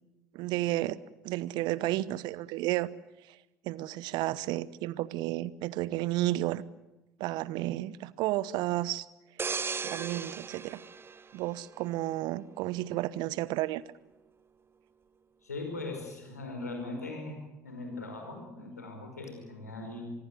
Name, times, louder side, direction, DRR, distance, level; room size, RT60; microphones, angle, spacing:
voice 1, 0.3-1.0 1.2-2.9 3.3-3.4 3.6-6.6 7.2-9.1 9.8-10.8 11.3-13.8, right 16 dB, 60° right, 21 dB, 0.9 m, -32 dB
sound 1, 9.4-12.1 12.5-12.8, right 5 dB, 25° right, 1.3 m, -37 dB
voice 2, 15.4-17.4 17.6-20.0, left 2 dB, 85° left, 4 dB, 5.3 m, -40 dB
26.0 x 21.0 x 7.9 m, 0.98 s
figure-of-eight pair, 55°, 9 cm